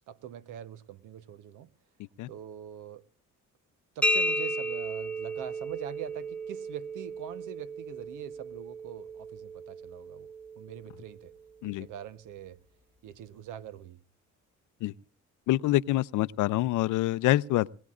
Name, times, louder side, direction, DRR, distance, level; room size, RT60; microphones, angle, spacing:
voice 1, 0.1-1.7 2.3-3.0 3.9-10.3 10.5-11.3 11.6-12.6 13.0-14.0, right 10 dB, 85° right, 1.0 m, -43 dB
sound 1, 4.0-11.6, right 1 dB, 5° left, 0.9 m, -34 dB
voice 2, 15.5-17.7, left 16 dB, 85° left, 0.6 m, -26 dB
21.5 x 18.5 x 2.4 m
cardioid pair, 90°, 30 cm